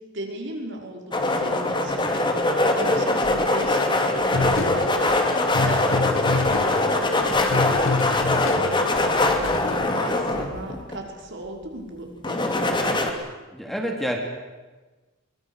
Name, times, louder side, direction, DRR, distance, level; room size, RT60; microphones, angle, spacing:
voice 1, 0.1-12.7, right 1 dB, 60° right, 1 dB, 5.5 m, -37 dB
sound 1, 1.1-11.0 12.2-13.1, left 2 dB, 25° left, 2.8 m, -22 dB
sound 2, 4.3-9.8, left 3 dB, 75° left, 1.3 m, -28 dB
voice 2, 13.5-14.2, equal, ahead, 2 dB, 3.1 m, -27 dB
23.0 x 22.5 x 8.3 m, 1.2 s
head